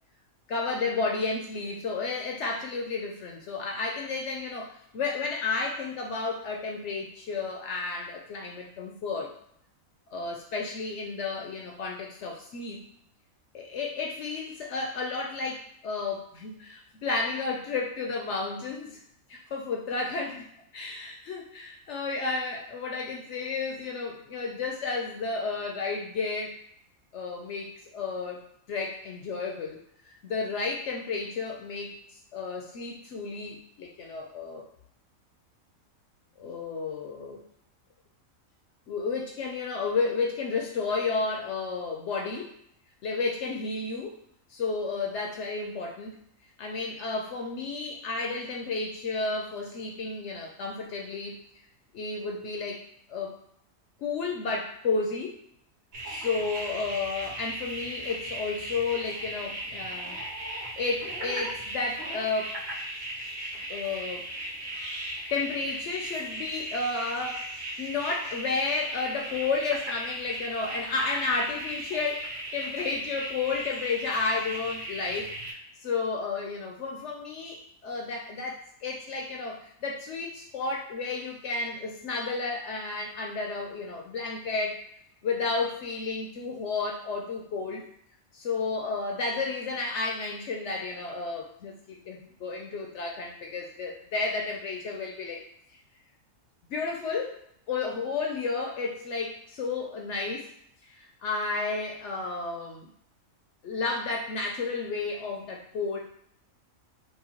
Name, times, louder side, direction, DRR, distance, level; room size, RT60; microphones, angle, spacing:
voice 1, 0.5-9.3 10.1-12.9 13.5-19.0 19.3-20.5 20.7-26.5 27.1-28.4 28.7-29.8 30.2-32.0 32.3-34.7 36.4-37.4 38.9-42.5 43.0-44.2 44.5-46.2 46.6-51.4 51.9-52.8 53.1-53.4 54.0-55.4 56.1-60.2 60.8-62.6 63.7-64.3 65.3-67.5 67.8-84.8 85.2-87.9 88.3-95.4 96.7-97.4 97.7-100.5 100.9-102.9 103.6-106.0, left 4 dB, 65° left, 0 dB, 0.8 m, -32 dB
sound 1, 55.9-75.5, right 1 dB, 85° right, 1.5 m, -37 dB
4.7 x 2.3 x 2.8 m, 0.71 s
omnidirectional pair, 1.4 m